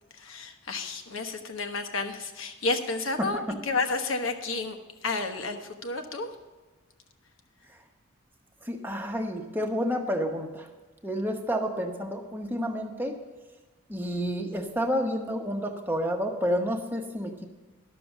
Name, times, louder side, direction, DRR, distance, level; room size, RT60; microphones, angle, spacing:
voice 1, 0.1-4.8 5.0-6.3, left 3 dB, 70° left, 6 dB, 1.2 m, -31 dB
voice 2, 3.2-3.6 8.6-10.7 11.0-13.1 13.9-17.5, equal, 10° right, 3 dB, 1.0 m, -30 dB
11.5 x 6.9 x 7.0 m, 1.3 s
head